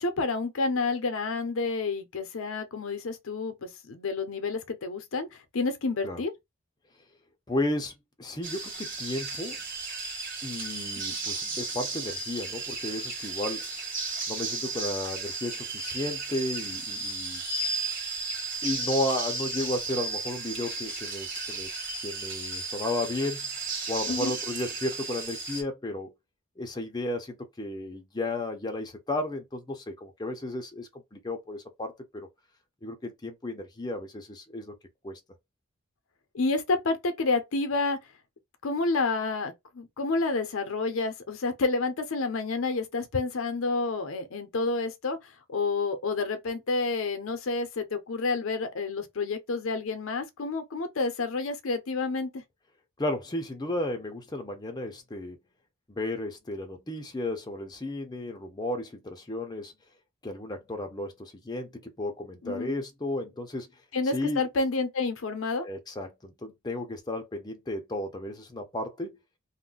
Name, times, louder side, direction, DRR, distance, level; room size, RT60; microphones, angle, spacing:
voice 1, 0.0-6.3 24.1-24.3 36.3-38.0 38.6-52.4 62.4-62.7 63.9-65.7, left 3 dB, 70° left, 0.6 m, -29 dB
voice 2, 7.5-9.6 10.4-13.7 14.3-17.4 18.6-21.7 22.0-23.5 23.9-26.1 26.6-32.3 32.8-34.7 35.0-35.2 53.0-55.4 55.9-59.7 60.2-63.7 64.1-64.4 65.6-69.2, left 1 dB, 20° left, 0.5 m, -33 dB
sound 1, 8.4-25.6, right 3 dB, 40° right, 1.2 m, -34 dB
2.4 x 2.1 x 3.7 m
head